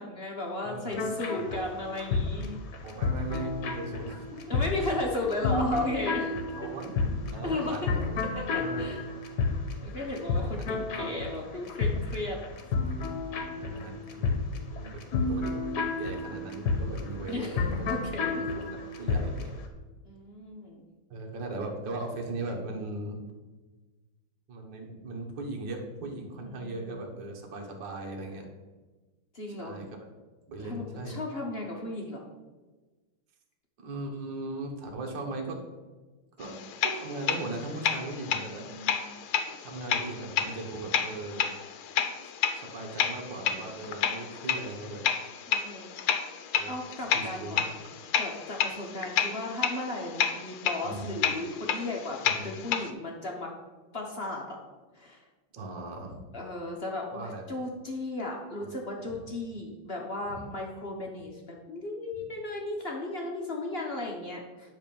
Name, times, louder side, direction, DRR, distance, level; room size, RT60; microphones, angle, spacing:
voice 1, 0.0-2.6 4.5-6.3 7.4-7.8 8.2-9.0 9.8-12.4 13.4-14.0 17.3-17.6 17.9-18.4 20.0-20.8 26.5-27.1 29.3-29.8 30.6-32.2 38.6-39.2 43.8-44.2 45.5-46.3 46.7-47.7 48.2-53.5 53.9-54.6 54.9-55.2 56.3-61.4 61.7-64.7, left 2 dB, 40° left, 0 dB, 0.9 m, -35 dB
voice 2, 0.6-1.8 2.8-4.6 6.6-8.0 8.6-8.9 10.3-10.7 10.9-11.1 13.6-14.4 14.7-15.5 16.0-17.9 18.6-19.5 21.1-23.2 24.5-28.5 29.5-29.9 30.5-31.2 33.8-35.6 36.4-36.5 36.8-38.7 39.6-41.5 42.6-45.0 46.5-46.8 47.1-47.6 50.8-51.2 52.3-52.6 55.5-56.2 57.1-57.5 58.6-58.7 59.0-59.2 60.3-60.5, right 2 dB, 65° right, 1 dB, 1.8 m, -38 dB
sound 1, 0.9-19.5, left 4 dB, 55° left, 1.4 m, -31 dB
sound 2, 36.4-52.9, left 8 dB, 85° left, 1.6 m, -31 dB
10.0 x 3.4 x 6.8 m, 1.3 s
omnidirectional pair, 2.3 m